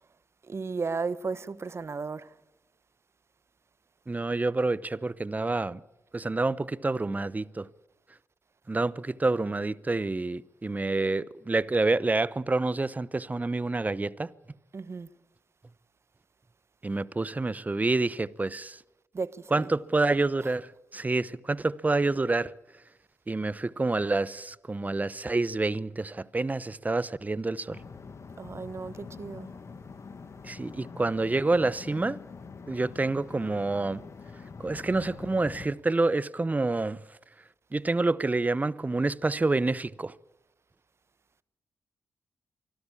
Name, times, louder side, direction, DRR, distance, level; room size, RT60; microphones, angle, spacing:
voice 1, 0.4-2.3 14.7-15.1 19.1-19.7 20.4-20.5 28.4-29.5, right 4 dB, 45° right, 1.1 m, -34 dB
voice 2, 4.1-5.8 6.1-7.7 8.7-14.3 16.8-18.8 19.5-22.5 23.3-27.8 30.4-32.2 32.7-34.0 34.6-37.0 37.7-40.1, right 3 dB, 25° right, 0.8 m, -28 dB
sound 1, 27.7-35.7, left 5 dB, 55° left, 1.8 m, -45 dB
24.5 x 13.0 x 8.6 m
supercardioid pair, 45°, 6 cm